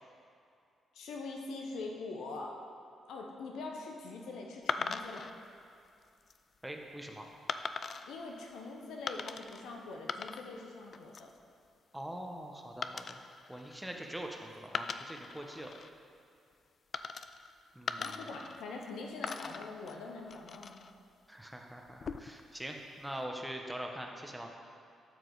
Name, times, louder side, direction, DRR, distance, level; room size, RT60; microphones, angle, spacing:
voice 1, 0.9-2.6 3.1-5.3 7.9-11.3 18.0-20.8, left 3 dB, 70° left, 1 dB, 0.8 m, -43 dB
sound 1, 4.7-5.3 6.0-6.4 7.5-8.1 9.1-9.6 9.9-10.7 10.9-11.4 12.8-14.3 14.7-15.9 16.9-17.5 17.9-18.9 19.2-20.9 21.9-22.5, left 5 dB, 50° left, 0.3 m, -40 dB
voice 2, 6.6-7.3 11.9-13.2 13.5-15.7 17.7-18.0 21.3-24.5, right 1 dB, 5° right, 2 dB, 1.1 m, -43 dB
12.5 x 4.8 x 4.0 m, 2.5 s
hypercardioid pair, 40°, 0 cm